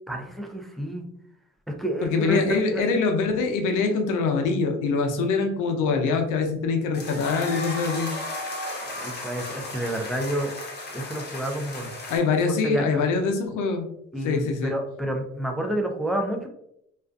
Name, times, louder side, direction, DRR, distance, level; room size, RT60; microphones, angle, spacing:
voice 1, 0.1-1.1 1.7-2.8 8.8-10.5 10.9-11.9 12.6-13.1 14.1-16.5, right 1 dB, ahead, 3 dB, 0.3 m, -29 dB
voice 2, 2.0-8.1 12.1-13.9 14.2-14.8, left 4 dB, 85° left, 4 dB, 0.5 m, -24 dB
sound 1, 6.9-12.2, left 2 dB, 35° left, 0.8 m, -35 dB
2.4 x 2.3 x 2.3 m, 0.76 s
cardioid pair, 90°, 30 cm